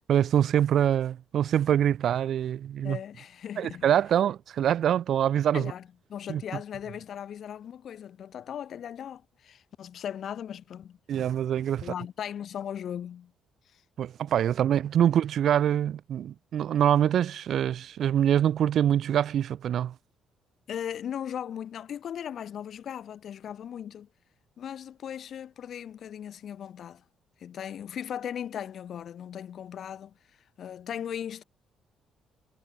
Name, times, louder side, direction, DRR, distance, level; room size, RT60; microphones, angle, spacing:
voice 1, 0.1-3.0 3.6-5.7 6.3-6.4 11.1-11.9 14.0-19.9, right 10 dB, 65° right, 0.8 m, -24 dB
voice 2, 2.8-3.9 5.5-11.0 11.8-13.3 20.7-24.1 24.6-27.0 27.4-30.1 30.6-31.4, left 9 dB, 60° left, 3.1 m, -38 dB
supercardioid pair, 65°, 0 cm